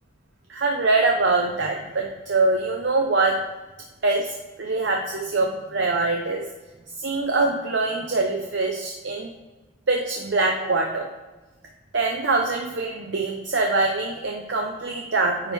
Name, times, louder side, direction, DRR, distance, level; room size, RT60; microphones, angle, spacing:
voice 1, 0.5-3.4 4.0-6.5 7.0-9.3 9.9-11.1 11.9-15.5, right 3 dB, 65° right, 1 dB, 0.7 m, -24 dB
9.6 x 4.5 x 3.5 m, 1.2 s
head